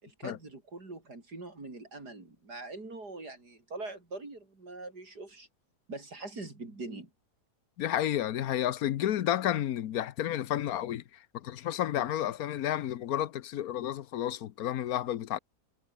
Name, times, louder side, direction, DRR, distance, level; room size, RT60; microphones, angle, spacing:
voice 1, 0.0-5.5 5.9-7.1, right 3 dB, 90° right, 5.8 m, -43 dB
voice 2, 7.8-11.0 11.3-15.4, left 11 dB, 70° left, 1.3 m, -31 dB
omnidirectional pair, 1.7 m